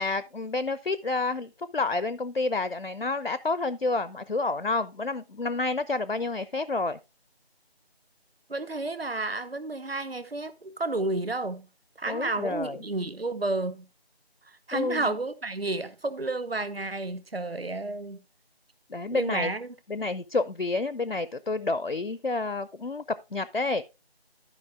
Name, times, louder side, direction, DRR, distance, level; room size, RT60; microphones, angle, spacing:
voice 1, 0.0-7.0 12.1-12.8 14.7-15.1 18.9-19.5 19.9-23.0 23.3-23.8, left 3 dB, 60° left, 0.6 m, -29 dB
voice 2, 8.5-11.7 12.0-13.9 14.4-18.2 19.1-19.7, right 2 dB, 65° right, 1.0 m, -31 dB
13.0 x 5.3 x 3.5 m
figure-of-eight pair, 180°, 32 cm